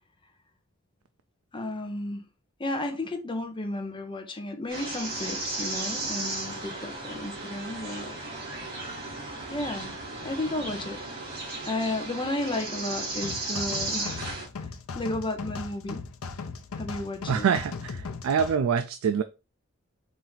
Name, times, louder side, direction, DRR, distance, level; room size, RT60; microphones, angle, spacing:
voice 1, 1.5-2.2 2.6-8.2 9.5-9.9 10.2-11.0 11.7-14.3 14.9-16.0 16.8-17.5, left 2 dB, 25° left, 0.7 m, -33 dB
sound 1, 4.7-14.5, right 2 dB, 45° right, 2.3 m, -35 dB
sound 2, 13.2-18.6, left 4 dB, 85° left, 0.6 m, -38 dB
voice 2, 17.3-19.2, right 7 dB, 80° right, 0.4 m, -25 dB
4.5 x 2.8 x 3.9 m
head